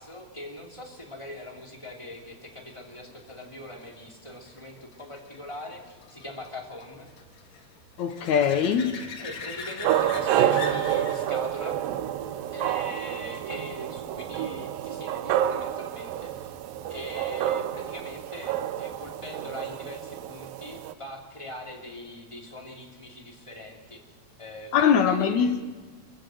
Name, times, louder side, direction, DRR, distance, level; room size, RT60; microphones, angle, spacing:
voice 1, 0.0-7.1 9.2-11.8 12.5-16.5 16.9-24.0 24.4-25.6, left 1 dB, 10° left, 2.2 m, -41 dB
sound 1, 2.4-13.7 19.4-19.5, left 4 dB, 55° left, 2.5 m, -43 dB
voice 2, 8.0-8.9 24.7-25.6, left 7 dB, 75° left, 1.8 m, -22 dB
sound 2, 9.8-20.9, right 11 dB, 75° right, 2.3 m, -29 dB
24.0 x 15.0 x 7.8 m
omnidirectional pair, 4.4 m